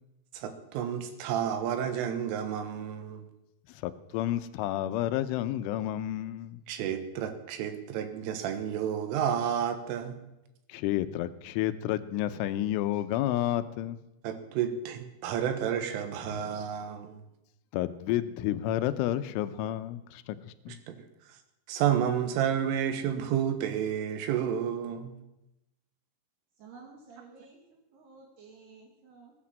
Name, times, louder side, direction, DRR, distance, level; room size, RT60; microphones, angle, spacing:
voice 1, 0.3-3.2 6.7-10.2 14.2-17.2 20.7-21.4 21.7-25.1, right 9 dB, 90° right, 8 dB, 3.9 m, -31 dB
voice 2, 3.7-6.6 10.7-14.0 17.7-20.8, left 13 dB, 85° left, 11 dB, 3.3 m, -30 dB
voice 3, 26.6-29.3, right 4 dB, 60° right, 0 dB, 3.8 m, -53 dB
20.0 x 9.5 x 7.5 m, 0.91 s
omnidirectional pair, 5.6 m